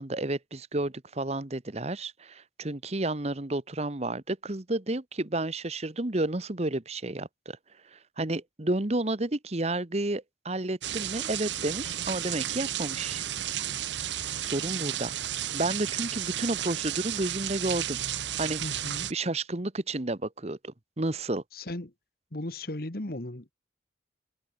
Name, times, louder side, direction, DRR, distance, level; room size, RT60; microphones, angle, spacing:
voice 1, 0.0-7.6 7.9-13.3 14.4-15.1 15.5-18.0 18.4-18.6 19.1-21.4, right 2 dB, 35° right, 1.2 m, -31 dB
sound 1, 10.8-19.1, right 11 dB, 85° right, 1.1 m, -33 dB
voice 2, 18.6-19.1 21.5-21.9 22.3-23.5, left 1 dB, 55° left, 1.8 m, -36 dB
head